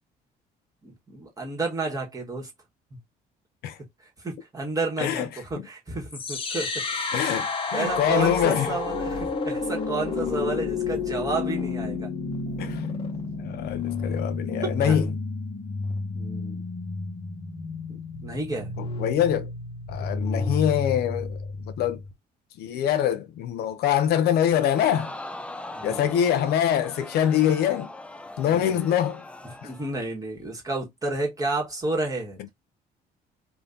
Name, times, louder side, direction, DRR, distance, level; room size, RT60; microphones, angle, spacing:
voice 1, 0.8-2.5 4.0-7.1 7.7-12.1 14.6-15.0 16.1-16.6 17.9-18.8 25.7-26.1 28.4-28.8 29.6-32.5, right 3 dB, 20° right, 1.4 m, -31 dB
voice 2, 5.0-5.7 7.1-8.7 12.6-12.9 13.4-15.1 18.8-19.5 19.9-22.0 22.6-25.1 25.8-27.9 28.4-29.2 29.6-29.7, left 10 dB, 70° left, 0.5 m, -24 dB
sound 1, 6.1-22.1, left 4 dB, 30° left, 0.9 m, -31 dB
sound 2, 7.8-13.8, equal, 60° right, 1.1 m, -43 dB
Crowd, 24.5-30.0 30.4-30.5, left 1 dB, 5° left, 0.4 m, -41 dB
2.7 x 2.5 x 3.5 m
cardioid pair, 110°, 17 cm